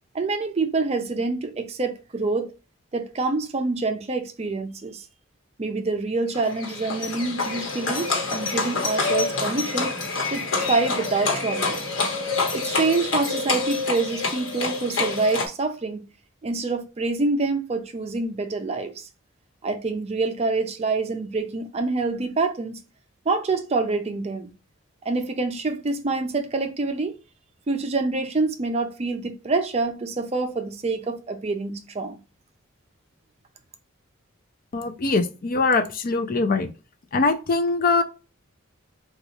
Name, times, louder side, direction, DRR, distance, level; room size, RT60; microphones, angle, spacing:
voice 1, 0.1-2.5 2.9-5.1 5.6-9.9 10.3-11.8 12.5-16.1 16.4-19.1 19.6-22.8 23.3-24.5 25.1-27.2 27.7-32.2, right 3 dB, 30° right, 0.4 m, -26 dB
Livestock farm animals working animals, 6.3-15.5, left 3 dB, 70° left, 1.1 m, -27 dB
voice 2, 34.7-36.7 37.1-38.0, left 3 dB, 45° left, 0.4 m, -22 dB
3.9 x 2.3 x 3.0 m
head